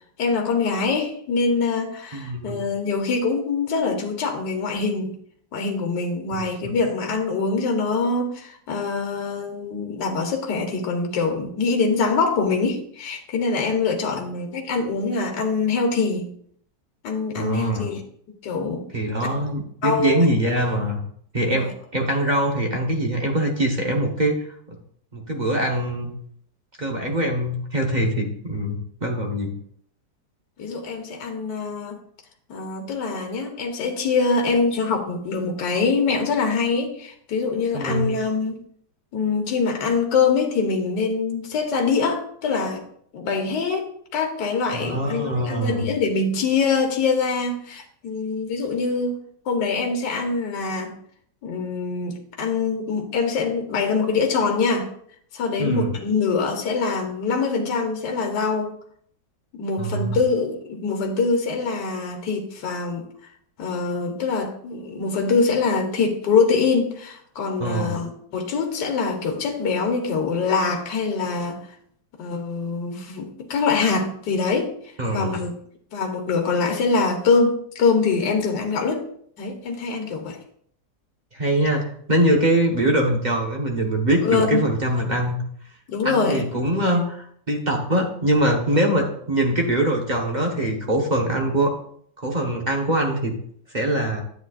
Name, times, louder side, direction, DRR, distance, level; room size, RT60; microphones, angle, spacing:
voice 1, 0.2-5.2 5.5-16.3 17.0-18.0 18.4-18.8 19.8-20.2 21.5-21.7 30.6-32.0 32.5-38.6 39.1-42.8 43.1-49.1 49.4-51.0 51.4-54.9 55.3-58.7 59.6-63.1 63.6-71.6 72.2-75.5 75.9-79.0 79.4-80.4 84.2-84.6 85.9-86.4, left 4 dB, 70° left, 3 dB, 1.7 m, -24 dB
voice 2, 2.1-2.6 6.3-6.7 17.4-17.9 18.9-21.0 21.3-24.4 24.7-24.8 25.1-26.1 26.8-29.5 37.7-38.1 44.7-45.9 55.6-55.9 59.8-60.2 67.6-67.9 75.0-75.4 81.3-81.8 82.1-85.4 86.0-91.7 92.2-93.3 93.7-94.2, right 1 dB, 30° right, 1 dB, 0.9 m, -23 dB
10.0 x 8.3 x 2.5 m, 0.64 s
omnidirectional pair, 2.0 m